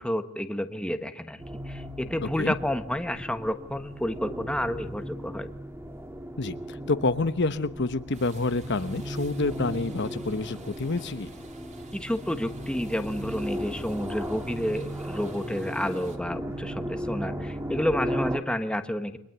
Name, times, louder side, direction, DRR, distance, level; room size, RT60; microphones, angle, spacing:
voice 1, 0.0-1.4 1.7-5.5 11.9-19.2, left 1 dB, 5° left, 8 dB, 1.3 m, -30 dB
sound 1, 1.4-18.4, equal, 10° right, 1.9 m, -36 dB
voice 2, 6.4-11.3, left 3 dB, 50° left, 11 dB, 1.0 m, -28 dB
sound 2, 8.1-16.2, right 3 dB, 30° right, 3.6 m, -52 dB
29.5 x 24.0 x 8.1 m, 0.79 s
head